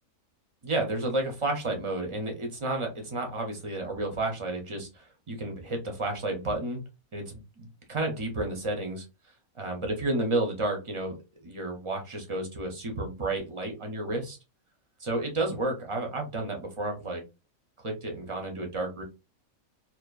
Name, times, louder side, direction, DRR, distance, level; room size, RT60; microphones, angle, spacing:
voice 1, 0.6-6.8 7.1-9.0 9.6-14.4 15.0-17.2 17.8-19.0, right 2 dB, 50° right, 2 dB, 0.3 m, -31 dB
2.8 x 2.2 x 2.3 m, 0.25 s
omnidirectional pair, 1.5 m